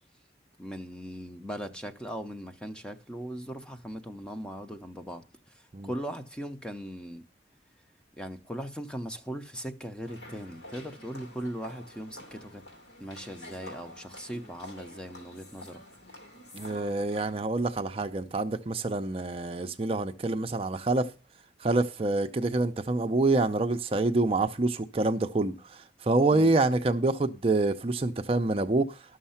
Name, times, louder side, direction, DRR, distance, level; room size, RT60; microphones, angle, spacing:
voice 1, 0.6-5.2 5.5-7.2 8.2-12.6 13.0-15.8 26.3-26.5, equal, 5° left, 0.7 m, -39 dB
sound 1, 10.0-17.3, left 1 dB, 75° left, 3.0 m, -48 dB
voice 2, 16.5-21.1 21.6-25.5 26.0-28.9, right 2 dB, 35° right, 0.6 m, -26 dB
12.5 x 6.5 x 5.7 m
head